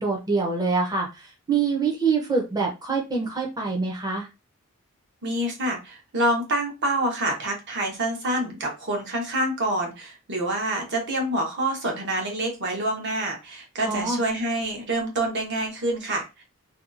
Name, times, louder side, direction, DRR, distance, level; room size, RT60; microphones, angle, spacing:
voice 1, 0.0-4.3 13.9-14.2, right 4 dB, 15° right, -1 dB, 0.6 m, -25 dB
voice 2, 5.2-16.4, right 1 dB, 50° right, 1 dB, 0.9 m, -27 dB
2.7 x 2.3 x 2.5 m, 0.26 s
head